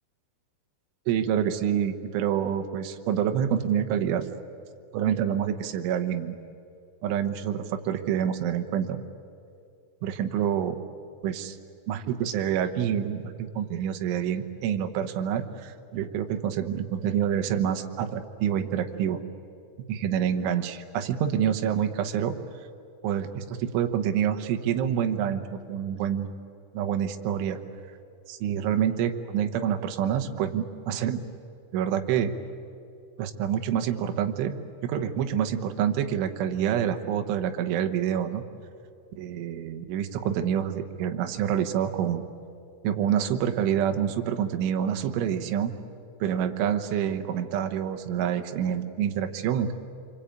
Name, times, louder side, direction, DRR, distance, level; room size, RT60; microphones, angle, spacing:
voice 1, 1.1-4.3 4.9-6.4 7.0-9.0 10.0-10.8 11.2-11.6 11.9-19.2 19.9-22.4 23.0-26.3 26.7-27.6 28.3-31.2 31.7-32.3 33.2-34.5 34.8-38.4 39.2-42.2 42.8-45.7 46.2-49.7, right 9 dB, 80° right, 6 dB, 3.6 m, -27 dB
26.5 x 25.0 x 8.8 m, 2.5 s
omnidirectional pair, 5.5 m